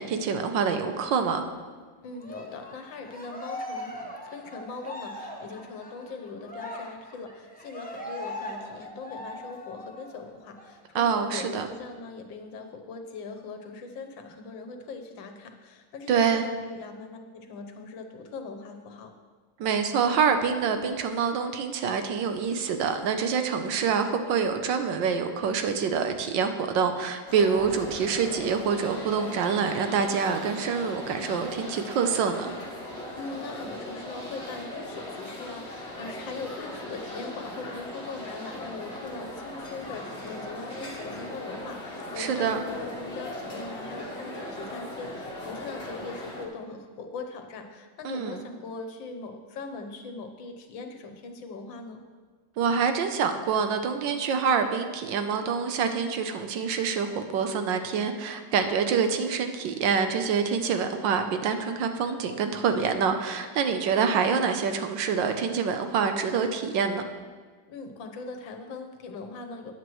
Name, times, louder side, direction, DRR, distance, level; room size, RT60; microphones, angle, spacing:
voice 1, 0.0-1.4 10.9-11.7 16.1-16.4 19.6-32.5 42.2-42.6 48.0-48.4 52.6-67.0, right 6 dB, 75° right, 7 dB, 1.4 m, -26 dB
voice 2, 2.0-19.1 33.1-52.0 67.7-69.7, left 3 dB, 80° left, 5 dB, 1.7 m, -40 dB
Cheering, 2.2-10.2 10.5-10.7 11.1-12.1, left 1 dB, 5° left, 0.9 m, -40 dB
sound 1, 27.3-46.5, left 1 dB, 35° left, 1.7 m, -39 dB
sound 2, 28.6-46.3, equal, 50° right, 3.7 m, -53 dB
14.0 x 9.2 x 3.1 m, 1.5 s
omnidirectional pair, 2.1 m